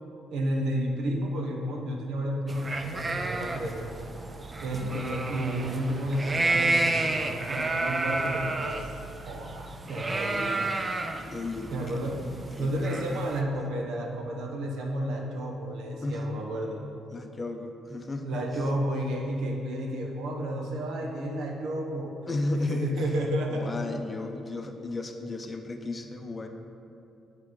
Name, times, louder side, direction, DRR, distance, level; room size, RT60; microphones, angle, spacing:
voice 1, 0.3-4.1 4.6-7.2 7.5-8.9 9.3-10.7 11.7-12.3 12.6-16.8 18.2-22.1 22.5-23.7, right 1 dB, 85° right, 1 dB, 0.9 m, -31 dB
sound 1, 2.5-13.4, right 2 dB, 30° right, 0.5 m, -31 dB
voice 2, 11.3-12.0 12.5-13.2 13.6-13.8 16.0-16.3 17.1-18.3 22.3-22.9 23.5-26.5, left 2 dB, 30° left, 5 dB, 0.6 m, -34 dB
10.5 x 3.8 x 3.8 m, 2.7 s
cardioid pair, 90°, 0 cm